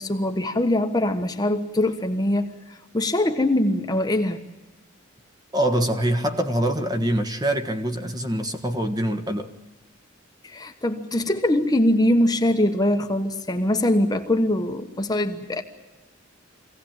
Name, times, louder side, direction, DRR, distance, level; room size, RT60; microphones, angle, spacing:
voice 1, 0.0-4.4 10.4-15.6, left 1 dB, 20° left, 1.2 m, -22 dB
voice 2, 5.5-9.5, right 1 dB, 20° right, 1.6 m, -24 dB
25.0 x 17.0 x 9.0 m
head